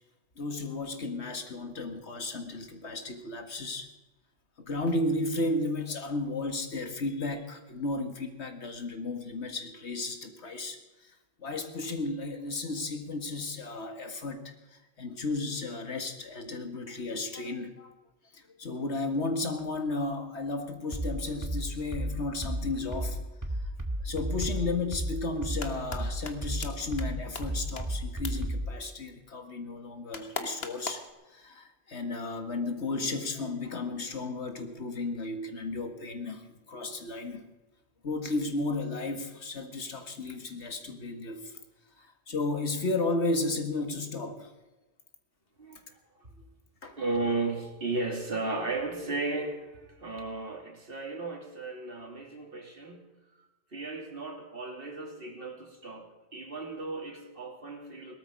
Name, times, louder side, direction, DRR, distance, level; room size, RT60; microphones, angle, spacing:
voice 1, 0.4-3.9 4.6-11.1 11.4-17.9 18.3-23.2 24.0-31.0 31.3-37.4 38.0-41.6 42.0-44.5 46.8-47.0, left 2 dB, 90° left, 6 dB, 2.1 m, -34 dB
sound 1, 20.9-28.8, right 1 dB, 15° right, 1.8 m, -33 dB
sound 2, 25.3-26.0 26.2-26.3 26.6-26.7 27.0-27.1 27.3-27.4 27.8-27.9 28.2-28.3 30.1-31.1, left 4 dB, 65° left, 1.6 m, -36 dB
voice 2, 47.0-53.1 53.4-58.1, right 3 dB, 55° right, 1 dB, 3.0 m, -35 dB
18.5 x 13.0 x 5.3 m, 1.1 s
omnidirectional pair, 1.1 m